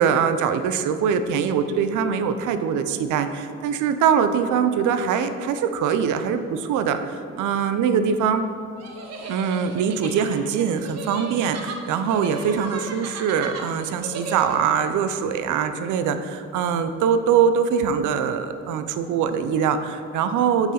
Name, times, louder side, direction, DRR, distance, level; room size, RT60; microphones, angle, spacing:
voice 1, 0.0-8.4 9.3-20.7, right 7 dB, 80° right, 9 dB, 0.5 m, -23 dB
sound 1, 8.8-14.8, right 3 dB, 60° right, 0.9 m, -35 dB
8.8 x 3.9 x 4.2 m, 2.6 s
cardioid pair, 90°, 30 cm